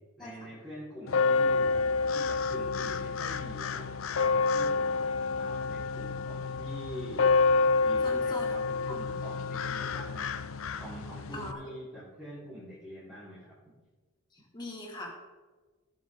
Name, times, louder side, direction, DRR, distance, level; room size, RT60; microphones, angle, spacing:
voice 1, 0.2-5.0 5.3-7.3 7.8-10.4 10.7-13.5, equal, ahead, -13 dB, 4.2 m, -45 dB
sound 1, 1.1-11.5, left 4 dB, 80° left, 0.6 m, -28 dB
voice 2, 8.0-8.6 8.9-9.2 11.3-11.6 14.5-15.2, left 1 dB, 20° left, -2 dB, 2.6 m, -41 dB
17.5 x 7.2 x 3.9 m, 1.3 s
head